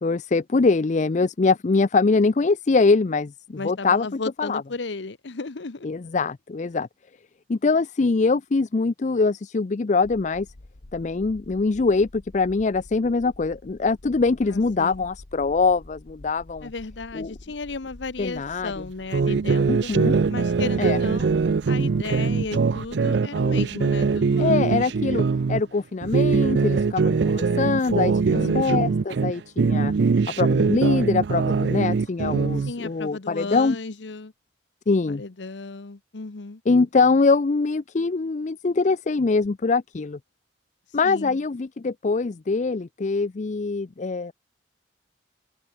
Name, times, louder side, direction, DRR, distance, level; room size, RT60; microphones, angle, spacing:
voice 1, 0.0-4.6 5.8-6.9 7.5-10.5 10.9-16.7 17.1-17.3 18.2-18.7 19.7-20.1 20.8-21.0 24.4-29.9 30.4-33.8 34.9-35.2 36.7-40.2 40.9-44.3, left 4 dB, 40° left, 0.5 m, -23 dB
voice 2, 3.6-5.9 14.4-15.1 16.6-19.9 20.3-21.3 21.7-24.9 28.3-28.8 32.7-34.3 34.9-36.6 41.0-41.4, left 3 dB, 90° left, 1.0 m, -34 dB
sound 1, 10.0-23.0, left 1 dB, 70° left, 1.3 m, -47 dB
sound 2, 19.1-25.6 26.0-29.3 29.6-32.7, right 4 dB, 75° right, 0.5 m, -22 dB
open air
head